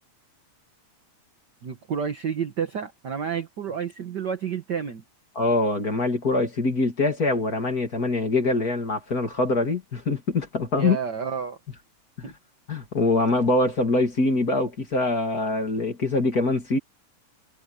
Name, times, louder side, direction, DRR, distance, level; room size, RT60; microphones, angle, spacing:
voice 1, 1.6-5.0 10.8-11.6 12.2-12.3, right 7 dB, 45° right, 1.5 m, -30 dB
voice 2, 5.4-11.0 12.2-12.3 12.7-16.8, left 2 dB, 30° left, 2.7 m, -24 dB
omnidirectional pair, 3.6 m